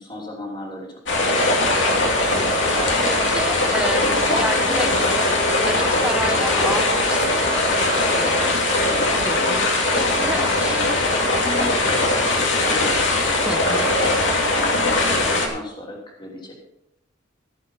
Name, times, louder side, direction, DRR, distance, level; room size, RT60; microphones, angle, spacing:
voice 1, 0.0-2.1 2.7-3.0 3.3-3.5 3.7-5.2 8.1-8.6 8.9-9.6 10.1-11.0 11.4-13.5 13.8-16.5, left 1 dB, 25° left, -2 dB, 3.1 m, -36 dB
sound 1, 1.1-15.5, left 2 dB, 75° left, 2.8 m, -20 dB
sound 2, 1.7-15.3, right 2 dB, 40° right, 2.8 m, -41 dB
voice 2, 3.0-5.2 5.6-8.5 9.2-10.8 13.5-13.9, right 1 dB, 5° right, 7 dB, 1.1 m, -30 dB
16.0 x 7.7 x 5.7 m, 0.86 s
head